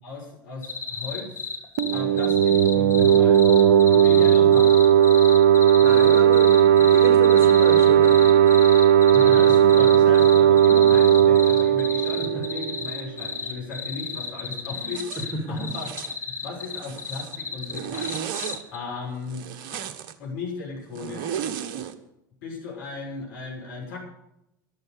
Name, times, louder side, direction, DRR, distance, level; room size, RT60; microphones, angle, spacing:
voice 1, 0.0-1.5 1.9-3.4 4.0-4.7 9.1-15.9 16.3-18.4 18.7-19.5 20.2-21.3 22.4-24.0, left 3 dB, 65° left, -2 dB, 6.4 m, -36 dB
sound 1, 0.6-18.8, left 5 dB, 25° left, 3.4 m, -33 dB
sound 2, 1.8-13.2, right 9 dB, 70° right, 1.0 m, -16 dB
voice 2, 3.9-4.3 5.8-8.5 12.0-12.4 15.2-15.7, right 1 dB, 25° right, 3 dB, 4.9 m, -32 dB
Zipper (clothing), 14.9-15.3 15.7-16.2 16.6-17.4 17.7-18.6 19.3-20.1 21.0-21.9, right 9 dB, 55° right, 1.3 m, -34 dB
13.5 x 12.0 x 6.8 m, 0.85 s
figure-of-eight pair, 80°, 11 cm